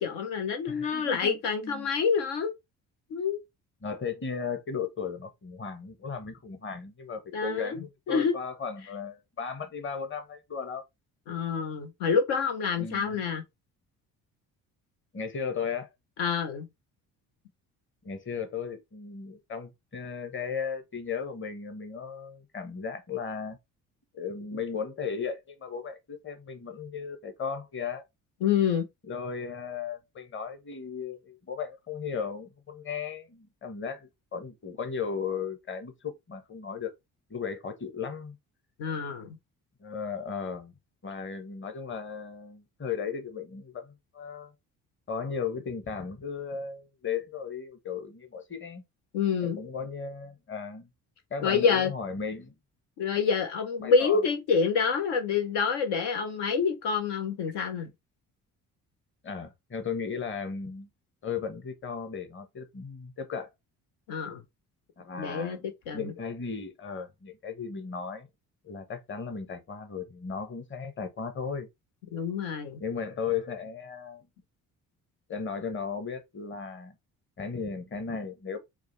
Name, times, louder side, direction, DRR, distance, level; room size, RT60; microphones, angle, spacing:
voice 1, 0.0-2.5 3.1-3.4 7.3-7.7 8.1-8.4 11.3-13.4 16.2-16.7 28.4-28.9 38.8-39.3 49.1-49.6 51.4-51.9 53.0-57.9 64.1-64.4 65.2-65.6 65.9-66.1 72.1-72.8, left 5 dB, 70° left, 0.8 m, -27 dB
voice 2, 0.7-1.9 3.8-10.8 12.8-13.2 15.1-15.9 18.0-23.6 24.1-28.0 29.1-36.9 37.3-38.4 39.8-40.7 41.0-44.5 45.1-48.8 49.4-50.9 51.3-52.5 53.8-54.2 59.2-60.9 61.2-63.5 65.0-65.6 65.9-68.3 68.6-71.7 72.8-74.3 75.3-76.9 77.4-78.6, left 6 dB, 30° left, 1.0 m, -36 dB
4.9 x 2.2 x 3.1 m
hypercardioid pair, 50°, 42 cm